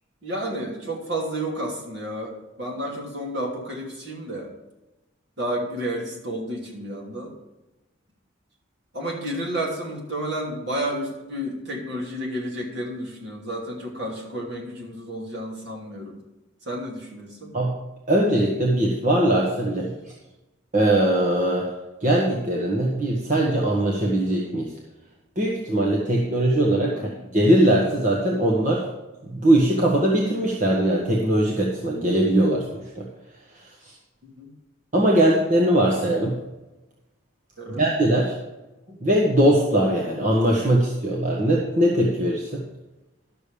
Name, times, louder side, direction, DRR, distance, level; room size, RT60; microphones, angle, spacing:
voice 1, 0.2-4.5 5.4-7.3 8.9-16.2 16.6-17.5 26.9-27.1 34.2-34.5 37.6-37.8 38.9-39.0, right 1 dB, 55° right, -1 dB, 2.8 m, -31 dB
voice 2, 18.1-20.1 20.7-21.7 22.0-24.7 25.4-28.8 29.3-33.1 33.5-33.9 34.9-36.4 37.7-38.3 39.0-42.6, right 1 dB, 40° right, -2 dB, 1.3 m, -21 dB
12.0 x 6.9 x 5.0 m, 1.0 s
head